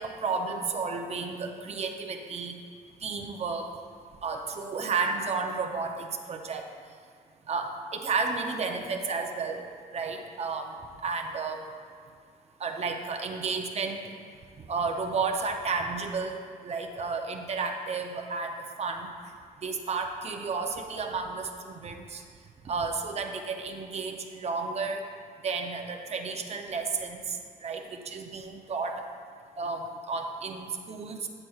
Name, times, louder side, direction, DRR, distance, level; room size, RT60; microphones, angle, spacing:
voice 1, 0.0-2.6 3.0-3.7 4.2-6.6 7.5-9.6 9.9-10.7 11.0-11.6 12.6-14.0 14.7-16.4 16.6-18.5 18.8-19.1 19.6-22.2 22.7-25.0 25.4-27.4 27.6-29.0 29.6-31.3, right 4 dB, 45° right, 4 dB, 0.6 m, -32 dB
9.8 x 7.5 x 2.3 m, 2.1 s
wide cardioid pair, 135°, 15 cm